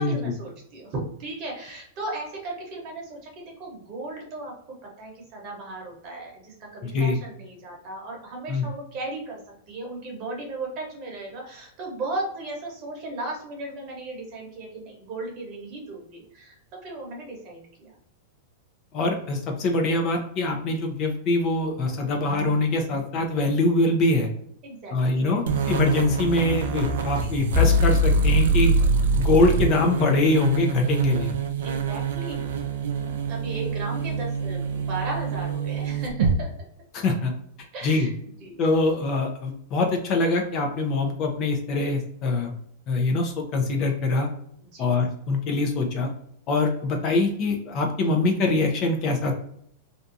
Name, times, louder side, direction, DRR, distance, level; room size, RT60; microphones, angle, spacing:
voice 1, 0.0-4.5 4.8-9.4 9.7-17.9 24.6-25.4 27.1-27.3 28.8-29.2 31.6-32.6 33.3-36.5 37.7-38.1 38.4-38.6 42.2-42.5 44.7-44.9, right 2 dB, 40° right, -1 dB, 1.0 m, -36 dB
voice 2, 6.8-7.2 8.5-8.6 18.9-24.3 24.9-28.7 29.1-31.3 36.9-37.3 37.8-38.1 38.6-42.5 42.9-44.3 44.8-46.1 46.5-49.3, left 2 dB, 35° left, 3 dB, 0.5 m, -23 dB
sound 1, 25.5-36.4, right 3 dB, 80° right, 0.4 m, -24 dB
2.5 x 2.3 x 2.6 m, 0.70 s
supercardioid pair, 155°, 0 cm